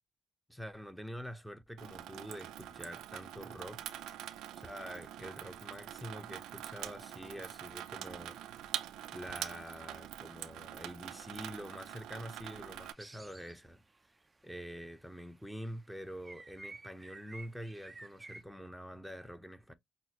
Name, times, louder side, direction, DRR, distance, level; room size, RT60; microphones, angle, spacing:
voice 1, 0.5-3.9 4.5-8.4 9.1-13.8 14.4-19.7, equal, ahead, 0.8 m, -46 dB
Water tap faucet / Sink (filling or washing), 1.8-12.9, right 12 dB, 90° right, 0.4 m, -45 dB
sound 1, 12.8-13.6 13.9-14.4 15.6-15.8 16.2-18.4, right 2 dB, 20° right, 0.4 m, -51 dB
6.1 x 2.1 x 2.9 m
cardioid pair, 90°, 0 cm